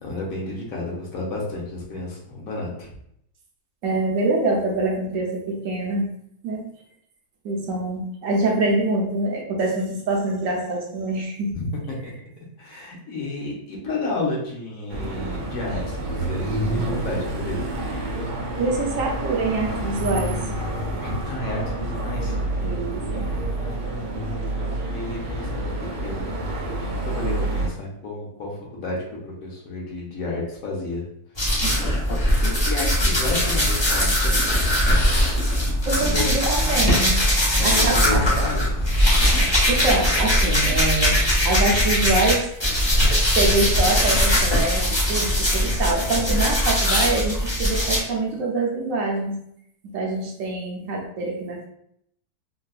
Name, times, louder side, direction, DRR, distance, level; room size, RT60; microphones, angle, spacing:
voice 1, 0.0-2.9 11.5-12.1 12.6-17.7 21.0-22.4 23.6-29.0 29.2-31.1 32.4-34.8 36.0-36.4 37.6-38.7, left 2 dB, 65° left, -2 dB, 1.2 m, -31 dB
voice 2, 3.8-6.1 6.4-6.6 7.4-11.5 18.6-20.4 20.7-20.8 22.6-23.3 31.6-31.7 35.8-37.2 37.6-38.2 39.7-41.2 41.4-42.5 43.4-49.4 49.9-51.7, right 2 dB, 65° right, 0 dB, 1.0 m, -25 dB
sound 1, 14.9-27.7, right 1 dB, 85° right, 1.2 m, -28 dB
sound 2, 31.4-42.3 42.6-48.0, equal, 20° left, 0.8 m, -20 dB
sound 3, 34.1-36.1 36.4-37.2 37.5-37.6 37.8-41.9 42.2-45.0 45.3-45.8 46.2-46.3 46.6-47.7, left 1 dB, 40° left, 0.4 m, -29 dB
3.8 x 2.2 x 2.4 m, 0.72 s
omnidirectional pair, 1.7 m